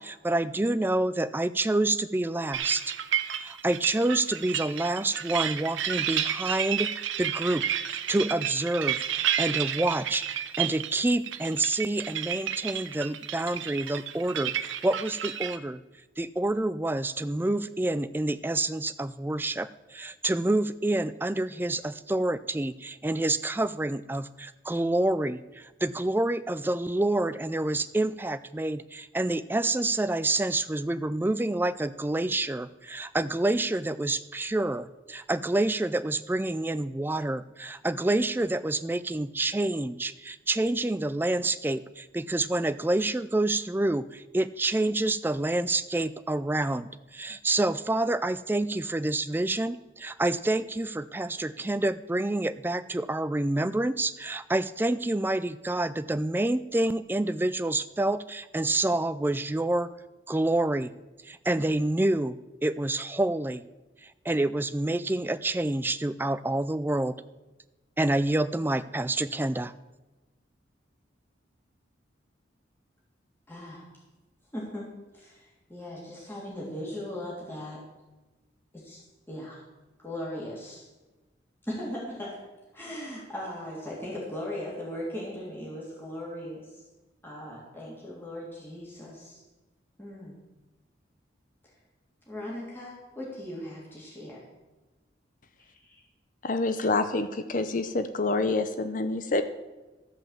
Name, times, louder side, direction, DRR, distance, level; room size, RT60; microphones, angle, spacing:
voice 1, 0.0-2.9 3.2-15.8 16.2-59.9 60.3-60.9 61.2-63.6 64.0-67.2 68.0-69.7, right 2 dB, 10° right, 13 dB, 0.3 m, -28 dB
sound 1, 2.5-15.6, right 10 dB, 85° right, 0.7 m, -31 dB
voice 2, 73.5-73.9 74.5-74.9 75.1-77.8 78.7-79.0 79.3-79.6 80.0-80.8 81.6-82.4 82.7-86.7 87.2-89.4 90.0-90.4 92.3-94.4 95.6-96.0, left 1 dB, 10° left, -6 dB, 3.0 m, -38 dB
voice 3, 96.4-99.4, left 3 dB, 45° left, 10 dB, 0.6 m, -27 dB
14.0 x 5.5 x 7.4 m, 1.1 s
head